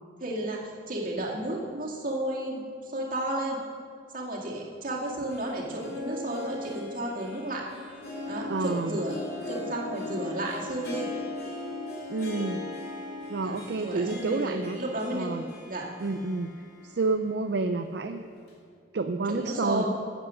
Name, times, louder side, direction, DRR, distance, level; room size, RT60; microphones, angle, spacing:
voice 1, 0.2-3.6 4.1-7.7 8.3-9.2 9.5-11.1 13.3-15.3 15.7-15.9 19.3-19.9, right 1 dB, 50° right, -3 dB, 2.2 m, -33 dB
Harp, 5.0-17.2 17.5-17.6 18.5-18.6, left 2 dB, 60° left, 2.8 m, -39 dB
voice 2, 8.5-9.0 12.1-12.6 13.3-14.8 15.1-15.4 16.0-16.5 16.8-18.3 18.9-19.8, right 3 dB, 65° right, 7 dB, 0.5 m, -29 dB
13.5 x 8.2 x 6.3 m, 2.2 s
head